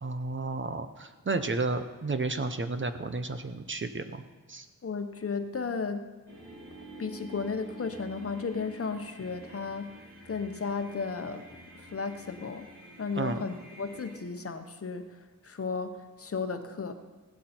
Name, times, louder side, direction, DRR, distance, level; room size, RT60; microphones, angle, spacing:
voice 1, 0.0-4.2 4.5-4.7 13.2-13.4, right 3 dB, 35° right, 9 dB, 0.8 m, -32 dB
voice 2, 4.8-6.1 7.0-10.0 10.2-11.5 11.8-12.7 13.0-16.9, left 5 dB, 45° left, 7 dB, 1.0 m, -34 dB
sound 1, 6.3-14.2, right 1 dB, 65° right, 3.3 m, -48 dB
16.5 x 12.0 x 4.4 m, 1.2 s
wide cardioid pair, 105°, 33 cm